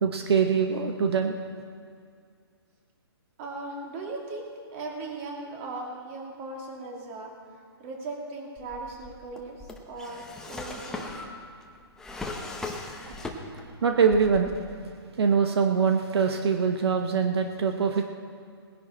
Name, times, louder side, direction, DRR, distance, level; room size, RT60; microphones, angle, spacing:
voice 1, 0.0-1.4 13.0-13.1 13.8-14.5 15.2-18.0, right 6 dB, 75° right, 5 dB, 1.0 m, -23 dB
voice 2, 3.4-7.3 7.8-11.1 13.4-13.5, right 3 dB, 30° right, 0 dB, 2.4 m, -38 dB
Drawer open or close, 8.6-13.8 14.1-14.9, left 2 dB, 5° left, 0.8 m, -39 dB
20.0 x 10.5 x 4.3 m, 2.2 s
hypercardioid pair, 155°, 14 cm